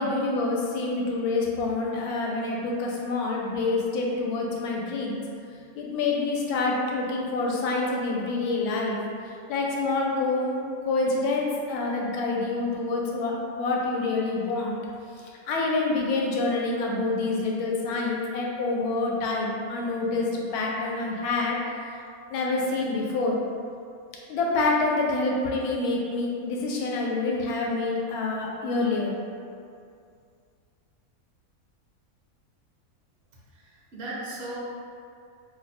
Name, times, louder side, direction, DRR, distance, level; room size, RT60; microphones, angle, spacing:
voice 1, 0.0-5.2 5.8-9.0 9.5-10.6 10.8-14.8 15.2-21.6 22.3-23.4 24.3-29.1, left 3 dB, 80° left, -2 dB, 1.1 m, -27 dB
voice 2, 33.5-34.6, right 2 dB, 60° right, -6 dB, 0.7 m, -37 dB
2.7 x 2.1 x 4.0 m, 2.3 s
omnidirectional pair, 1.6 m